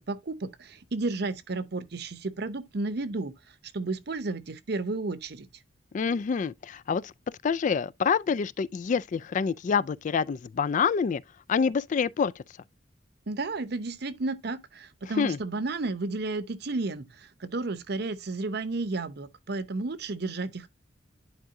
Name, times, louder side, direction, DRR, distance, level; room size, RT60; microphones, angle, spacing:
voice 1, 0.0-3.3 3.7-5.5 13.3-17.1 17.4-20.7, right 3 dB, 65° right, 0.8 m, -32 dB
voice 2, 5.9-7.1 7.4-11.2 11.5-12.4 15.2-15.4, left 6 dB, 45° left, 0.3 m, -27 dB
10.5 x 4.8 x 2.6 m
head